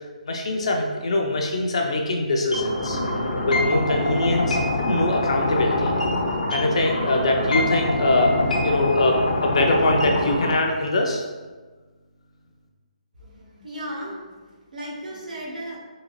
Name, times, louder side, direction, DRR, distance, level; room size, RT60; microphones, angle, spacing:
voice 1, 0.3-3.0 3.5-5.9 6.5-8.4 8.6-11.2, left 2 dB, 50° left, 1 dB, 0.4 m, -23 dB
sound 1, 2.5-10.5, left 1 dB, 80° left, 0.8 m, -24 dB
voice 2, 13.2-15.8, right 1 dB, 85° right, -3 dB, 1.2 m, -36 dB
3.7 x 2.8 x 3.0 m, 1.3 s
hypercardioid pair, 175°, 4 cm